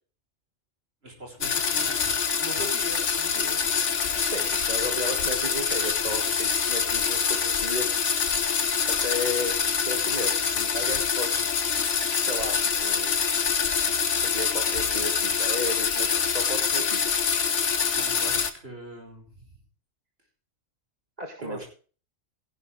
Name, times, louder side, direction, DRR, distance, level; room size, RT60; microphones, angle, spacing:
voice 1, 1.0-1.9 2.4-3.6 17.9-19.5 21.4-21.6, right 1 dB, 50° right, 1 dB, 5.6 m, -40 dB
sound 1, 1.4-18.5, left 6 dB, 65° left, 1.5 m, -25 dB
voice 2, 4.3-8.0 8.9-9.6 9.8-11.5 12.2-13.1 14.2-17.1 21.2-21.6, left 1 dB, 30° right, 3 dB, 2.0 m, -34 dB
17.0 x 12.0 x 3.4 m, 0.38 s
omnidirectional pair, 1.3 m